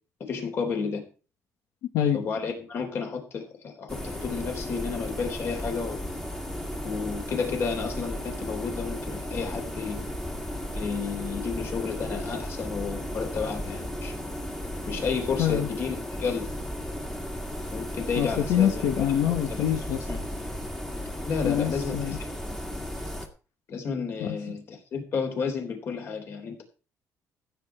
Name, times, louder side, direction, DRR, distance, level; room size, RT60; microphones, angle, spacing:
voice 1, 0.3-1.0 2.1-6.0 6.8-10.1 10.7-14.1 14.9-16.5 17.7-18.9 19.3-19.8 20.1-20.2 21.3-22.2 23.7-26.6, left 5 dB, 45° left, 4 dB, 3.7 m, -31 dB
sound 1, 3.9-23.3, equal, 5° left, 1.9 m, -35 dB
voice 2, 15.4-15.7 18.2-20.0 21.4-22.2 24.2-24.3, left 10 dB, 80° left, 4 dB, 1.7 m, -25 dB
15.5 x 8.4 x 4.6 m, 0.35 s
cardioid pair, 170°, 6 cm